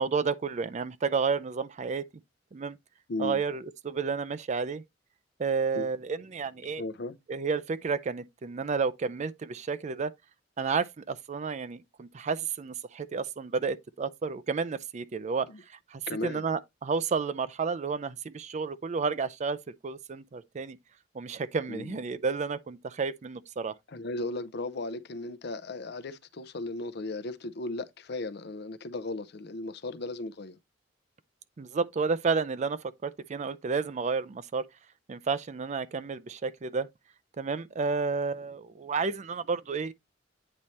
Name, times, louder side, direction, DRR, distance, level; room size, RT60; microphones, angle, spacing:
voice 1, 0.0-2.0 2.5-2.8 3.2-4.8 5.4-6.8 7.3-10.1 10.6-15.5 15.9-19.6 19.8-20.8 21.1-23.7 31.6-34.6 35.1-36.9 37.4-39.9, right 5 dB, 40° right, 0.4 m, -31 dB
voice 2, 3.1-3.4 5.7-5.9 6.8-7.2 15.5-15.6 16.1-16.5 21.7-22.0 23.9-30.6, left 2 dB, 60° left, 0.6 m, -36 dB
8.7 x 3.2 x 4.1 m
head